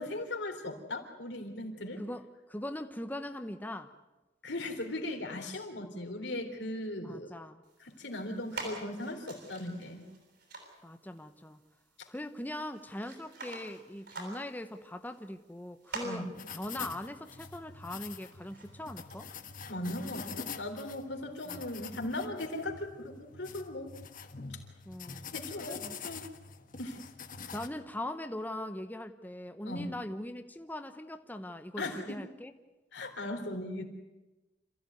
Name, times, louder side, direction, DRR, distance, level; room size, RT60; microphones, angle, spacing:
voice 1, 0.0-2.0 4.4-7.3 7.8-10.1 12.0-12.1 16.0-16.3 19.7-24.0 24.5-24.6 25.3-26.3 26.8-27.0 29.6-29.9 31.8-32.2 32.9-33.9, left 1 dB, 80° left, 3 dB, 3.6 m, -38 dB
voice 2, 2.0-3.9 5.3-5.6 7.0-7.6 10.8-11.6 12.1-19.3 19.8-20.3 21.5-21.7 24.9-26.0 27.5-32.5, left 1 dB, 10° left, 7 dB, 0.9 m, -41 dB
sound 1, 7.6-19.2, right 3 dB, 60° right, 7.8 m, -48 dB
sound 2, 16.3-27.7, left 6 dB, 50° left, 1.4 m, -45 dB
27.5 x 15.0 x 9.4 m, 1.1 s
head